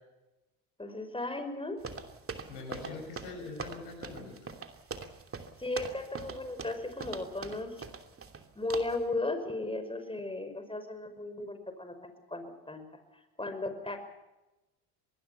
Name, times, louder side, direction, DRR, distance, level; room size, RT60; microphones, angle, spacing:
voice 1, 0.8-1.8 5.6-7.8 8.6-12.9 13.1-14.0, left 2 dB, 10° left, 8 dB, 5.8 m, -36 dB
sound 1, 1.8-8.4 8.7-9.0, right 5 dB, 30° right, 3.0 m, -42 dB
voice 2, 2.5-4.5, left 3 dB, 85° left, 3 dB, 6.3 m, -43 dB
26.0 x 20.5 x 5.8 m, 1.0 s
hypercardioid pair, 75°, 46 cm